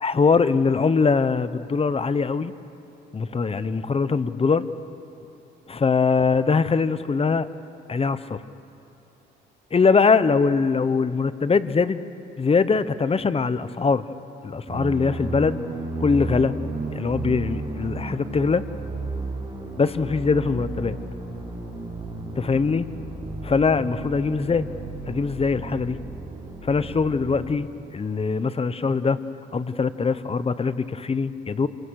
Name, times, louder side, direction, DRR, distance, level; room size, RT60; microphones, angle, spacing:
voice 1, 0.0-2.5 3.1-4.7 5.7-7.5 7.9-8.4 9.7-12.0 12.4-14.0 14.4-15.6 16.0-16.5 16.9-18.6 19.8-21.0 22.4-22.9 23.4-24.7 25.1-26.0 26.6-27.7 27.9-29.2 29.5-31.7, left 4 dB, 30° left, 13 dB, 1.0 m, -22 dB
sound 1, 14.7-27.6, right 2 dB, 25° right, 6.3 m, -33 dB
28.0 x 23.0 x 6.5 m, 2.8 s
cardioid pair, 90°, 20 cm